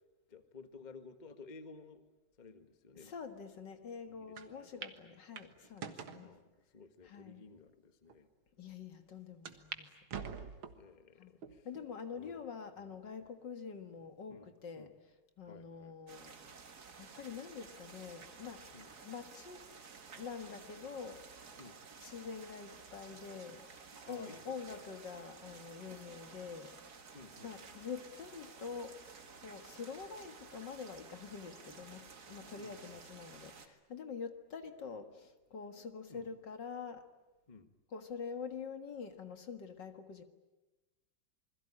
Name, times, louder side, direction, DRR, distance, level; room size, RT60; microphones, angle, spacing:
voice 1, 0.3-2.0 2.4-3.1 4.0-5.0 6.2-8.3 10.7-11.7 12.2-12.4 12.9-13.0 14.3-14.5 14.7-14.9 15.5-15.9 18.7-18.9 21.6-21.8 24.1-24.8 27.1-27.5 32.6-33.0 36.1-36.3 37.5-37.7, left 4 dB, 25° left, 1.4 m, -55 dB
voice 2, 2.9-6.4 7.0-7.5 8.6-10.0 11.2-15.0 15.4-16.4 17.0-18.7 19.0-19.7 20.2-21.3 22.0-23.7 24.1-26.8 27.4-29.0 29.4-37.1 37.9-40.2, left 6 dB, 60° left, 2.3 m, -46 dB
sound 1, 4.4-4.5 4.8-5.0 5.4-6.2 6.9-7.0 7.7-7.8 8.1-8.2 9.5-9.8 10.1-10.9 11.4-11.9 12.4-12.5 13.6-14.1, right 7 dB, 80° right, 2.3 m, -45 dB
sound 2, 16.1-33.7, right 5 dB, 50° right, 2.2 m, -54 dB
28.0 x 21.5 x 9.8 m
omnidirectional pair, 2.2 m